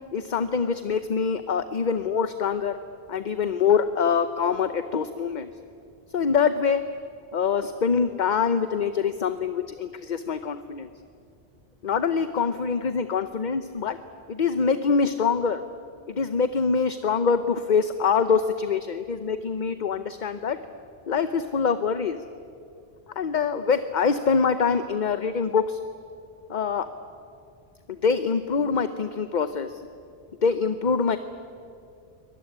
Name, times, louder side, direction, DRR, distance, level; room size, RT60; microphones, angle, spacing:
voice 1, 0.1-2.8 3.1-5.5 6.1-6.8 7.3-10.9 11.8-14.0 14.3-15.6 16.1-20.6 21.1-22.2 23.2-25.8 26.5-26.9 27.9-29.8 30.4-31.2, left 5 dB, 45° left, 10 dB, 0.9 m, -24 dB
24.0 x 19.5 x 9.8 m, 2.5 s
omnidirectional pair, 1.1 m